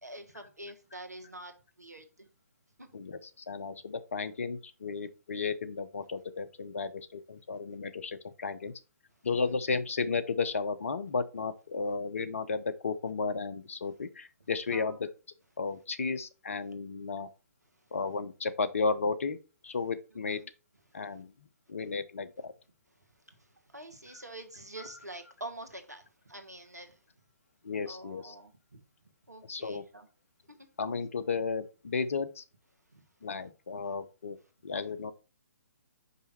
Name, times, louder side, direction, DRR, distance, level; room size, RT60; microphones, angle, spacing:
voice 1, 0.0-1.5 1.8-2.3 2.8-2.9 9.3-9.5 14.7-15.0 20.3-20.5 23.3-27.0 27.8-28.8 29.3-30.1 32.9-33.0, right 1 dB, 80° right, 1.4 m, -46 dB
voice 2, 2.9-8.7 9.2-15.1 15.6-17.3 17.9-19.4 19.6-20.4 20.9-21.3 21.7-22.5 27.6-28.3 29.5-29.8 30.8-32.4 33.2-34.4 34.6-35.1, left 4 dB, 55° left, 0.8 m, -33 dB
5.5 x 5.1 x 4.2 m
figure-of-eight pair, 130°, 9 cm